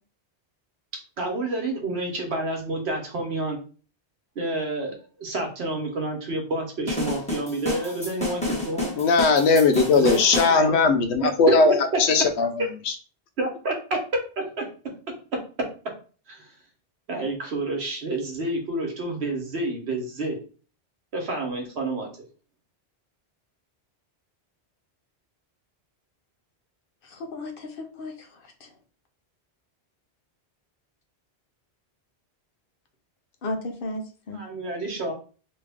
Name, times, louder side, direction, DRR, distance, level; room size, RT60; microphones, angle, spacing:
voice 1, 1.2-3.6 4.3-9.0 9.9-10.4 10.7-10.8 11.2-11.5 11.9-12.0 12.6-12.7 13.4-13.7 14.4-14.7 15.3-15.4 16.3-16.5 17.1-20.4 21.1-22.1 34.3-35.1, right 2 dB, 75° right, 2 dB, 1.2 m, -29 dB
sound 1, 6.9-10.6, left 2 dB, 5° left, 1.0 m, -29 dB
voice 2, 9.0-12.5 12.9-13.0, left 4 dB, 85° left, 8 dB, 0.9 m, -19 dB
voice 3, 27.0-28.7 33.4-34.4, left 2 dB, 60° left, 4 dB, 0.8 m, -35 dB
3.1 x 2.4 x 3.4 m, 0.38 s
omnidirectional pair, 1.1 m